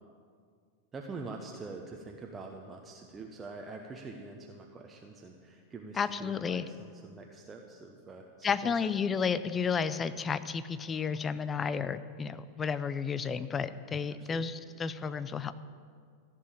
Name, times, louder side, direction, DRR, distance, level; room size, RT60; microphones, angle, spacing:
voice 1, 0.9-8.7 14.1-14.5, right 3 dB, 20° right, 2 dB, 1.0 m, -45 dB
voice 2, 6.0-6.6 8.4-15.5, left 6 dB, 20° left, 14 dB, 0.6 m, -32 dB
15.0 x 7.4 x 9.0 m, 2.1 s
figure-of-eight pair, 90°, 0 cm